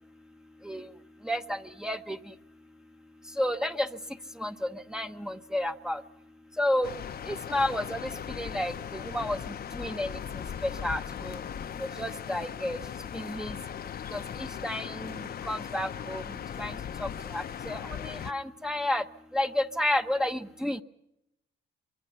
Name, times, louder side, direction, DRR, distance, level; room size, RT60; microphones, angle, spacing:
voice 1, 1.3-2.2 3.4-3.9 4.4-4.5 4.9-6.0 6.6-6.9 7.3-8.1 8.4-9.4 9.7-10.1 10.6-11.4 11.8-12.8 13.1-13.6 14.1-15.1 15.5-16.2 16.6-16.7 17.0-19.0 19.3-20.8, left 1 dB, 5° right, 5 dB, 0.9 m, -31 dB
sound 1, 6.8-18.3, left 8 dB, 50° left, 0.9 m, -38 dB
24.5 x 23.0 x 5.6 m, 0.87 s
cardioid pair, 90°, 20 cm